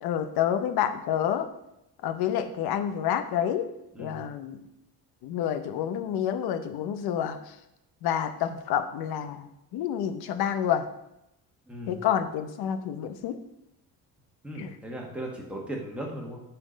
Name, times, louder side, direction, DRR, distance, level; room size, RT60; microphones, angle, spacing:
voice 1, 0.0-1.5 2.0-3.7 4.0-4.6 5.2-7.4 8.0-10.9 11.9-13.4 14.6-14.8, left 9 dB, 75° left, 10 dB, 0.9 m, -28 dB
voice 2, 11.7-12.0 14.4-16.4, right 1 dB, 5° right, -2 dB, 1.8 m, -37 dB
9.7 x 4.5 x 5.2 m, 0.84 s
cardioid pair, 155°, 38 cm